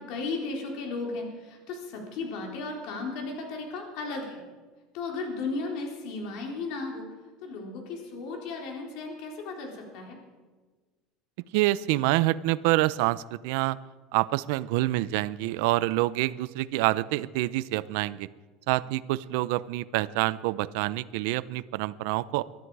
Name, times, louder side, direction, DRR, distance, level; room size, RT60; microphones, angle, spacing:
voice 1, 0.0-4.4 4.9-7.1 7.4-10.2, left 3 dB, 60° left, 1 dB, 3.8 m, -35 dB
voice 2, 11.5-13.8 14.1-18.3 18.7-22.4, right 17 dB, 75° right, 17 dB, 0.6 m, -27 dB
23.0 x 12.5 x 4.8 m, 1.3 s
cardioid pair, 150°, 0 cm